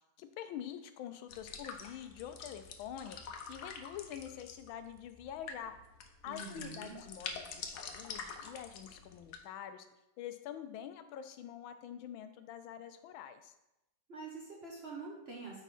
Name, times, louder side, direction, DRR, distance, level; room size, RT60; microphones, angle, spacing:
voice 1, 0.2-3.2 3.5-5.7 6.2-9.9 10.2-13.5, left 10 dB, 85° left, 10 dB, 1.4 m, -46 dB
sound 1, 1.3-9.4, left 5 dB, 65° left, 1.1 m, -47 dB
voice 2, 6.2-7.0 14.1-15.6, right 4 dB, 45° right, -3 dB, 0.9 m, -46 dB
9.0 x 3.6 x 4.2 m, 0.90 s
omnidirectional pair, 2.1 m